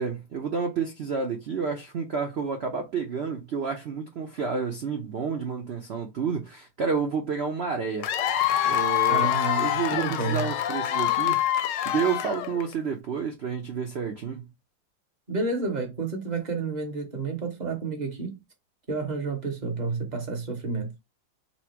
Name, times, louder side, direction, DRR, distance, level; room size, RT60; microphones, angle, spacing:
voice 1, 0.0-8.1 8.7-9.3 9.6-11.4 11.8-14.4, right 5 dB, 75° right, 0.6 m, -30 dB
Cheering / Applause / Crowd, 8.0-12.7, left 12 dB, 75° left, 1.2 m, -25 dB
voice 2, 9.1-10.5 15.3-18.4 18.9-20.9, right 4 dB, 30° right, 1.0 m, -30 dB
4.3 x 2.1 x 4.4 m
omnidirectional pair, 2.0 m